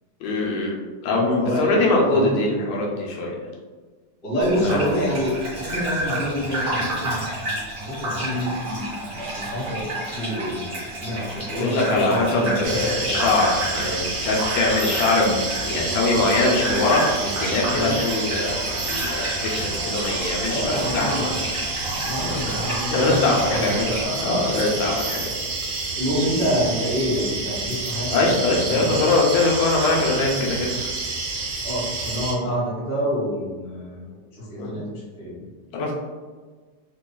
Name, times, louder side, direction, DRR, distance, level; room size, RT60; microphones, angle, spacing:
voice 1, 0.2-0.8 1.0-3.4 4.6-4.8 11.5-21.3 22.3-22.5 22.8-23.9 24.2-25.2 28.1-30.8 34.6-34.7 35.7-35.9, left 2 dB, 85° left, -2 dB, 2.1 m, -22 dB
voice 2, 1.1-2.5 4.2-8.9 9.2-13.2 17.7-18.0 20.5-21.5 22.1-24.7 25.9-29.1 31.6-35.4, equal, 50° left, -8 dB, 1.8 m, -27 dB
Gurgling / Bathtub (filling or washing), 4.4-24.1, right 1 dB, 45° right, 1.1 m, -31 dB
sound 1, 12.6-32.3, right 3 dB, 70° right, 1.5 m, -29 dB
5.2 x 2.2 x 2.2 m, 1.4 s
omnidirectional pair, 3.6 m